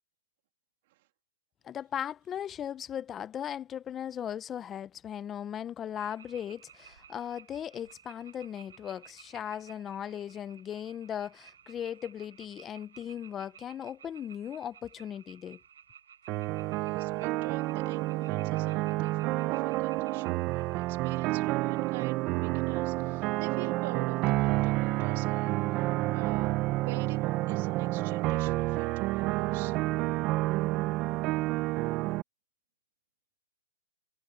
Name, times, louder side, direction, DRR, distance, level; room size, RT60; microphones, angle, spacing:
voice 1, 1.6-15.6, left 9 dB, 20° left, 0.8 m, -38 dB
sound 1, 5.9-22.1, right 8 dB, 85° right, 5.2 m, -56 dB
sound 2, 16.3-32.2, right 19 dB, 30° right, 1.0 m, -29 dB
voice 2, 16.6-29.8, right 18 dB, 50° right, 2.8 m, -46 dB
hypercardioid pair, 150°, 0 cm